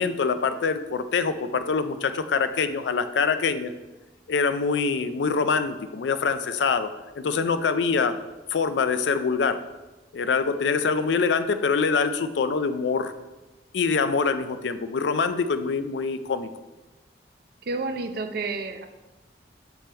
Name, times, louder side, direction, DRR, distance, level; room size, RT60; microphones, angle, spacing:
voice 1, 0.0-3.7 4.3-6.9 7.2-8.1 8.5-9.6 10.1-13.1 13.7-16.5, left 5 dB, 70° left, 11 dB, 0.4 m, -24 dB
voice 2, 17.6-18.9, right 3 dB, 60° right, 7 dB, 0.5 m, -30 dB
7.5 x 3.5 x 4.3 m, 1.1 s
head